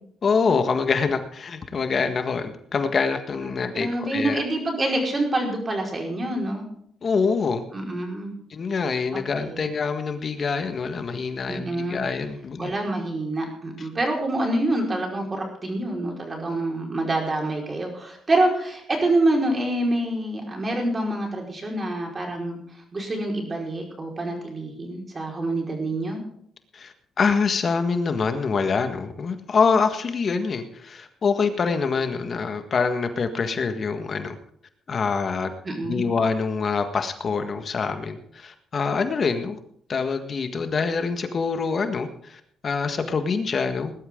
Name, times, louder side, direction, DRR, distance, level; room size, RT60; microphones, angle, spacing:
voice 1, 0.2-4.4 7.0-7.6 8.5-12.7 26.7-34.3 34.9-35.5 35.8-39.6 39.9-43.9, left 5 dB, 45° left, 7 dB, 1.7 m, -25 dB
voice 2, 3.4-6.6 7.7-8.3 9.1-9.6 11.5-12.0 12.6-22.6 22.9-26.2 35.6-36.0, right 1 dB, 30° right, 1 dB, 5.0 m, -26 dB
20.0 x 12.0 x 3.9 m, 0.67 s
cardioid pair, 90°, 0 cm